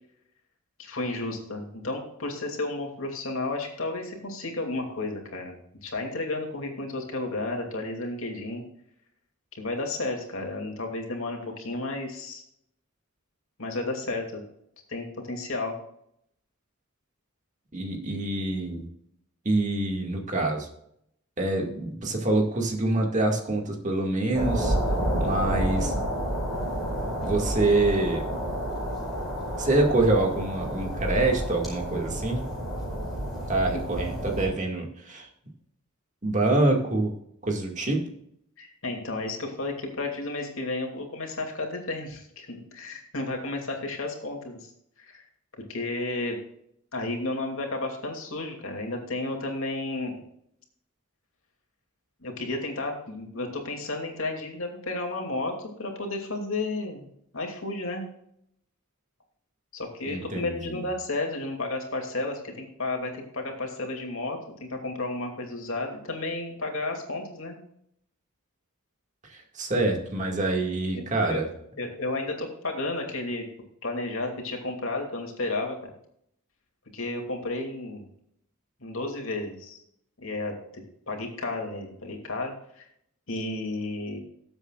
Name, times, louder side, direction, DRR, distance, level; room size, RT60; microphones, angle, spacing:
voice 1, 0.8-5.5 5.8-8.6 9.5-12.4 13.6-14.4 14.9-15.7 38.6-44.7 45.0-45.2 45.7-46.4 46.9-50.2 52.2-57.1 57.3-58.1 59.7-67.6 70.9-71.4 71.8-73.4 73.8-75.9 76.9-78.0 78.8-79.8 80.2-80.5 81.1-82.9 83.3-84.2, left 2 dB, 65° left, 2 dB, 2.7 m, -32 dB
voice 2, 17.7-18.9 19.5-20.7 21.4-24.8 25.2-25.9 27.2-28.2 29.6-32.4 33.5-35.3 36.2-37.1 37.4-38.0 60.1-60.8 69.2-71.5, right 2 dB, 35° right, 1 dB, 2.1 m, -26 dB
sound 1, 24.3-34.5, equal, ahead, 4.9 m, -30 dB
19.5 x 8.0 x 2.5 m, 0.73 s
head